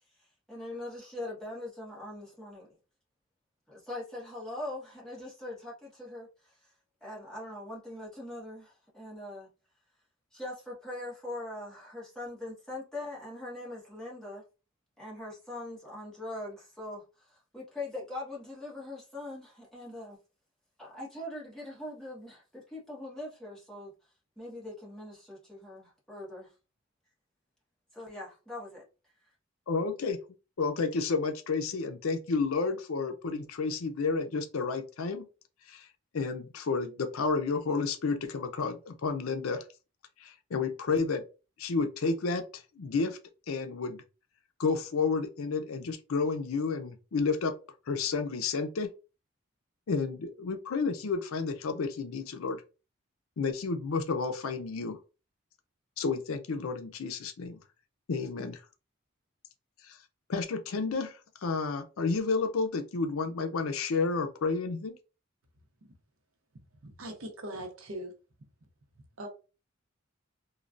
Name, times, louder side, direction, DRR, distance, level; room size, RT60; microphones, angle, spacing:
voice 1, 0.5-2.7 3.7-6.6 7.0-9.5 10.3-14.4 15.0-20.2 20.8-23.9 24.4-26.5 27.9-28.8, left 1 dB, 5° left, 1.2 m, -42 dB
voice 2, 29.7-30.2 30.6-35.3 35.7-35.9 36.1-39.6 40.2-41.2 41.6-43.2 43.5-44.0 44.6-47.6 47.9-48.9 49.9-52.6 53.4-55.0 56.0-57.6 58.1-58.6 59.8-60.0 60.3-65.0, left 4 dB, 80° left, 0.5 m, -31 dB
voice 3, 66.8-68.1 69.2-69.3, right 1 dB, 75° right, 0.8 m, -40 dB
3.2 x 2.2 x 2.5 m
head